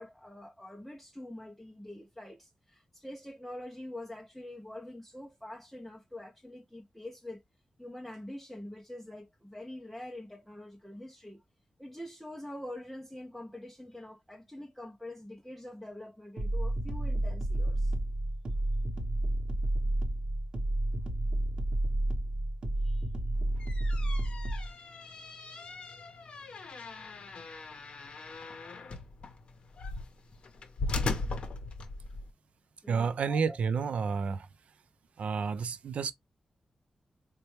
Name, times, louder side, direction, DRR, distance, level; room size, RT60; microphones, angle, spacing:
voice 1, 0.0-7.4 7.8-11.4 11.8-17.9 22.8-23.1 25.5-26.0 32.8-33.6, left 1 dB, ahead, 0.4 m, -45 dB
sound 1, 16.4-24.7, right 1 dB, 45° right, 0.9 m, -30 dB
sound 2, 23.4-32.3, left 3 dB, 50° left, 0.6 m, -39 dB
voice 2, 32.9-34.5 35.2-36.1, right 5 dB, 75° right, 0.4 m, -30 dB
4.1 x 2.1 x 3.1 m
wide cardioid pair, 180°, 2 cm